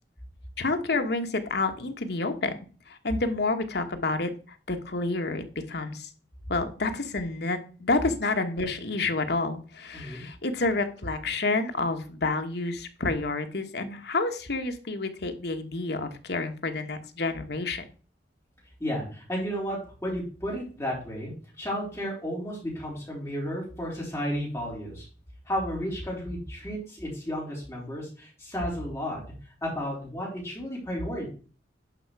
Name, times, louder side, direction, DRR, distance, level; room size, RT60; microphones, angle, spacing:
voice 1, 0.6-2.5 2.9-4.3 4.7-6.1 6.5-17.8, left 3 dB, 65° left, 7 dB, 1.3 m, -29 dB
voice 2, 9.9-10.3 18.8-25.1 25.5-29.2 29.6-31.3, equal, 15° left, -4 dB, 4.0 m, -33 dB
11.0 x 4.9 x 4.7 m, 0.38 s
head